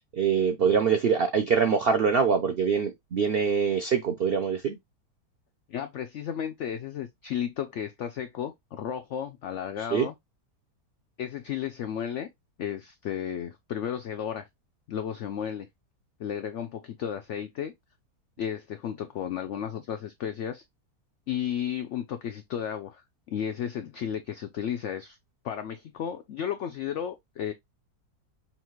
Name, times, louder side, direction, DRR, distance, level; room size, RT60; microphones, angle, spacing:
voice 1, 0.1-4.8 9.9-10.1, right 6 dB, 90° right, 0.5 m, -24 dB
voice 2, 5.7-10.1 11.2-12.3 12.6-14.5 14.9-15.7 16.2-17.7 18.4-20.6 21.3-23.0 23.3-25.2 25.4-27.5, left 9 dB, 80° left, 0.6 m, -33 dB
5.6 x 2.4 x 3.0 m
omnidirectional pair, 1.8 m